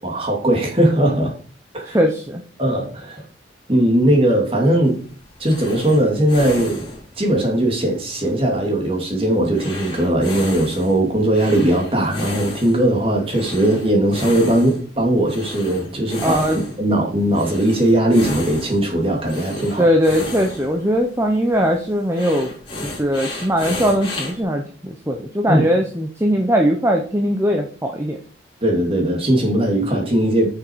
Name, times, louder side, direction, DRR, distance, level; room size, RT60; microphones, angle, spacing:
voice 1, 0.0-1.3 1.7-2.0 2.6-3.2 3.7-5.0 5.4-6.8 7.2-19.9 25.5-25.6 28.6-30.5, right 1 dB, 30° right, 0 dB, 2.7 m, -19 dB
voice 2, 1.9-2.4 16.2-16.6 19.8-22.5 22.8-28.2, equal, 15° right, 2 dB, 1.0 m, -20 dB
sound 1, 4.8-24.4, left 2 dB, 30° left, 3.4 m, -34 dB
9.2 x 6.8 x 4.7 m, 0.43 s
head